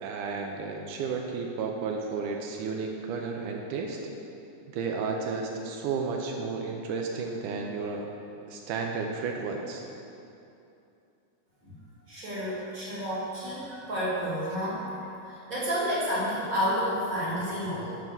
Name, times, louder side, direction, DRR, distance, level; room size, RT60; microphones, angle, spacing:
voice 1, 0.0-4.0 4.7-8.1 8.5-9.8, right 4 dB, 80° right, 1 dB, 2.0 m, -32 dB
voice 2, 12.1-18.0, equal, 35° right, -7 dB, 1.5 m, -30 dB
9.9 x 5.7 x 4.6 m, 2.7 s
omnidirectional pair, 4.0 m